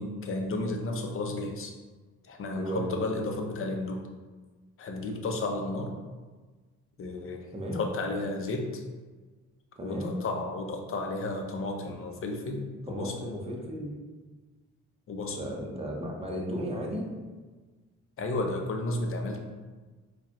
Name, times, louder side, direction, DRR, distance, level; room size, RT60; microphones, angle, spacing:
voice 1, 0.0-1.7 2.2-4.0 4.8-5.9 7.0-8.8 9.8-13.2 15.1-15.4 18.2-19.4, left 2 dB, 45° left, 3 dB, 0.6 m, -33 dB
voice 2, 2.5-2.9 7.5-7.8 9.8-10.2 12.9-14.0 15.3-17.1, equal, 20° right, -1 dB, 0.8 m, -34 dB
4.6 x 2.3 x 2.9 m, 1.3 s
cardioid pair, 90°, 30 cm